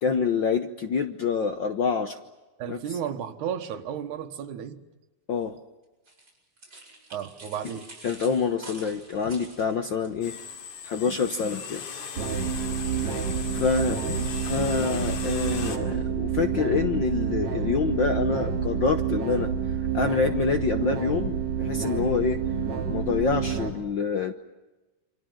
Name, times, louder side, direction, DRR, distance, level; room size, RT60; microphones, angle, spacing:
voice 1, 0.0-2.2 2.7-2.8 5.3-5.6 8.0-10.4 10.8-11.8 13.5-19.5 19.9-22.4 22.9-24.3, left 5 dB, 65° left, 7 dB, 1.1 m, -26 dB
voice 2, 2.6-4.8 7.1-7.9, right 9 dB, 85° right, 5 dB, 2.8 m, -33 dB
sound 1, 6.1-10.1, right 2 dB, 35° right, 6.9 m, -47 dB
sound 2, 10.2-15.8, left 6 dB, 85° left, 3.8 m, -38 dB
sound 3, 12.2-23.7, right 7 dB, 65° right, 3.9 m, -28 dB
28.5 x 25.0 x 7.7 m, 1.1 s
omnidirectional pair, 3.4 m